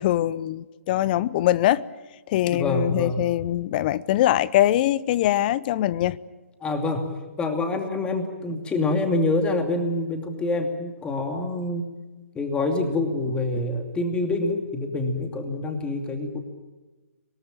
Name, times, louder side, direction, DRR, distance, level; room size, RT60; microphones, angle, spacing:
voice 1, 0.0-1.9 2.3-6.2, left 13 dB, 35° left, 0.7 m, -22 dB
voice 2, 2.5-3.2 6.6-7.1 7.4-11.8 12.3-16.4, left 2 dB, 10° left, 2.6 m, -26 dB
25.5 x 18.5 x 9.1 m
hypercardioid pair, 140°, 8 cm